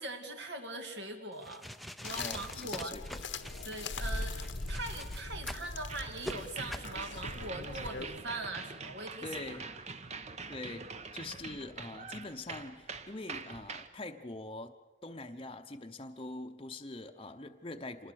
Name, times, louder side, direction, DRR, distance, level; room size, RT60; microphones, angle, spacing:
voice 1, 0.0-1.7 2.0-3.0 3.6-9.3, right 2 dB, 65° right, 4 dB, 2.3 m, -41 dB
sound 1, 1.3-5.7 6.2-6.4 6.7-6.9, equal, ahead, 0.7 m, -44 dB
sound 2, 2.0-8.2, left 3 dB, 90° left, 1.3 m, -40 dB
voice 2, 2.2-3.2 9.2-9.7 10.5-14.7 15.0-18.1, left 2 dB, 30° left, 4 dB, 0.9 m, -44 dB
sound 3, 5.9-13.9, right 4 dB, 35° right, 1.1 m, -44 dB
26.5 x 19.5 x 6.5 m, 1.1 s
head